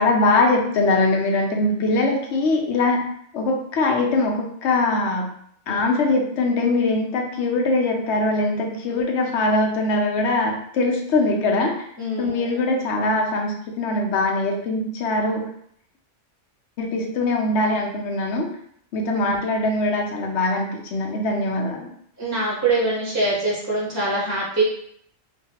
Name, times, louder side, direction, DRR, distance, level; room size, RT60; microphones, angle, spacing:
voice 1, 0.0-5.3 5.7-11.7 12.2-15.5 16.8-18.5 18.9-21.9, left 2 dB, 65° left, 1 dB, 0.9 m, -22 dB
voice 2, 12.0-12.6 19.2-19.4 22.2-24.6, right 2 dB, 15° right, -6 dB, 0.6 m, -24 dB
3.1 x 2.2 x 2.8 m, 0.67 s
omnidirectional pair, 1.3 m